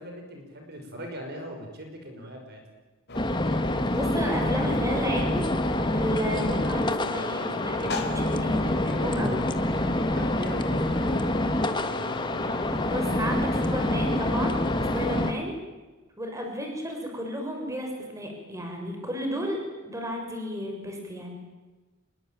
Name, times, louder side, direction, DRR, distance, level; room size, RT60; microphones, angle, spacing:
voice 1, 0.0-2.6 10.0-11.7, equal, 50° right, 4 dB, 6.0 m, -40 dB
sound 1, 3.1-15.3, left 2 dB, 50° left, 3.8 m, -37 dB
sound 2, 3.1-15.3, left 1 dB, 20° left, 1.6 m, -27 dB
voice 2, 3.9-5.5 5.9-9.4 12.5-15.5 16.2-21.4, equal, 15° right, 2 dB, 6.4 m, -33 dB
28.0 x 22.0 x 9.2 m, 1.2 s
head